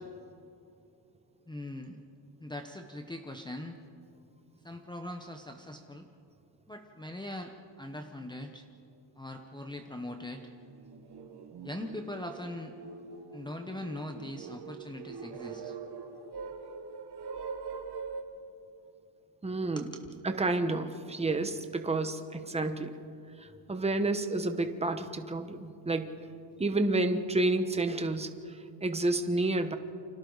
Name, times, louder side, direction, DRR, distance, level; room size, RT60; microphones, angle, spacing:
voice 1, 1.5-2.0 2.4-3.8 4.6-6.1 6.7-8.7 9.2-10.5 11.6-12.7 13.3-15.8 19.8-20.0, left 1 dB, 10° left, 4 dB, 0.9 m, -41 dB
sound 1, 9.6-9.7 10.2-18.2, right 5 dB, 60° right, 1.7 m, -43 dB
voice 2, 19.4-19.9 20.2-22.9 23.4-26.1 26.6-29.8, right 2 dB, 15° right, 7 dB, 1.1 m, -30 dB
29.5 x 26.0 x 4.0 m, 2.5 s
cardioid pair, 150°, 45 cm